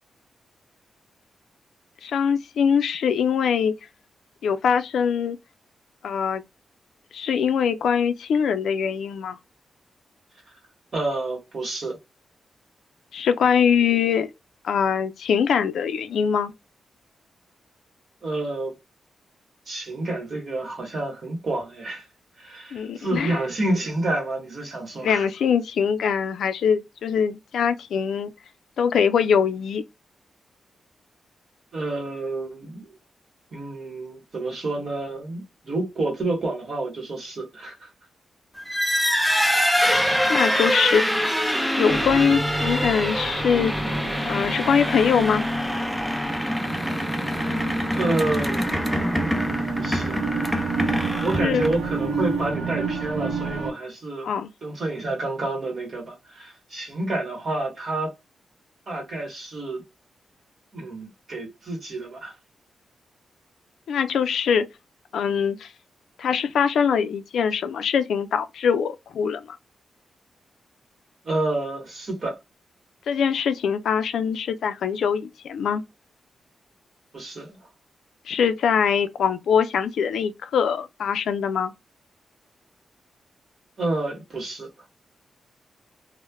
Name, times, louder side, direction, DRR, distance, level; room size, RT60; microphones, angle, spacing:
voice 1, 2.0-3.8 4.4-5.4 6.0-6.4 7.1-9.4 13.1-14.3 14.6-16.5 22.7-23.4 25.0-28.3 28.8-29.8 40.3-41.2 41.7-43.7 44.2-45.4 51.4-51.6 54.2-54.5 63.9-64.7 65.1-65.7 66.2-69.5 73.1-75.8 78.3-81.7, left 7 dB, 85° left, 0.4 m, -23 dB
voice 2, 10.9-12.0 18.2-18.8 19.7-22.0 22.4-25.3 31.7-32.9 33.5-37.9 47.9-48.8 49.7-50.3 50.9-54.3 54.6-58.1 58.9-59.8 60.7-62.3 71.2-72.4 77.1-77.6 83.8-84.7, right 2 dB, 40° right, 1.2 m, -29 dB
sound 1, 38.6-52.0, equal, ahead, 0.3 m, -25 dB
sound 2, 41.9-53.7, right 3 dB, 85° right, 0.7 m, -30 dB
3.1 x 2.1 x 2.2 m
wide cardioid pair, 160°, 0 cm